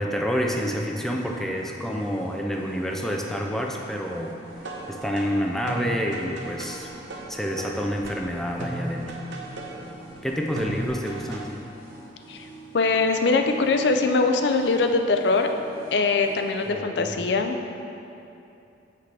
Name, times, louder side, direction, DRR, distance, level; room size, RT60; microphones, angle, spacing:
voice 1, 0.0-4.3 4.9-6.9 7.3-9.2 10.2-11.6 16.7-17.2, equal, ahead, 0 dB, 0.4 m, -28 dB
sound 1, 0.8-16.7, right 2 dB, 55° right, 1.0 m, -46 dB
sound 2, 4.4-11.4, right 2 dB, 85° right, 0.8 m, -37 dB
voice 2, 12.7-15.5 15.9-17.6, left 3 dB, 70° left, 5 dB, 0.4 m, -22 dB
7.3 x 5.8 x 3.3 m, 2.7 s
head